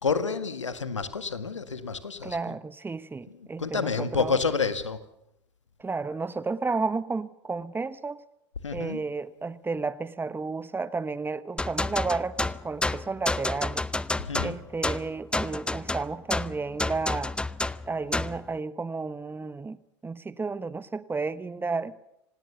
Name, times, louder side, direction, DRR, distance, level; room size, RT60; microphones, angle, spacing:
voice 1, 0.0-2.4 3.3-5.0 8.6-9.0 14.2-14.6, left 5 dB, 90° left, 12 dB, 1.8 m, -29 dB
voice 2, 2.2-4.4 5.8-8.2 8.7-13.9 14.4-17.3 17.9-19.8 20.0-21.9, right 4 dB, 15° right, 16 dB, 1.1 m, -32 dB
sound 1, 11.6-18.4, left 2 dB, 5° left, 0.7 m, -30 dB
26.0 x 19.0 x 6.9 m, 0.83 s
hypercardioid pair, 85°, 15 cm